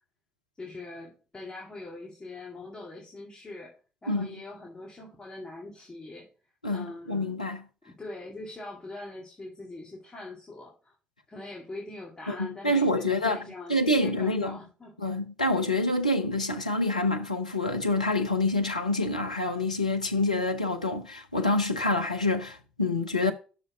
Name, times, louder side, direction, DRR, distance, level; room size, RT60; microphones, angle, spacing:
voice 1, 0.6-3.7 4.0-6.3 6.7-7.4 7.8-10.9 11.3-15.0, left 2 dB, 20° left, 2.1 m, -42 dB
voice 2, 6.6-7.6 12.3-13.4 13.7-14.6 15.0-23.3, left 2 dB, 85° left, 0.6 m, -27 dB
6.2 x 4.7 x 6.0 m
figure-of-eight pair, 45°, 4 cm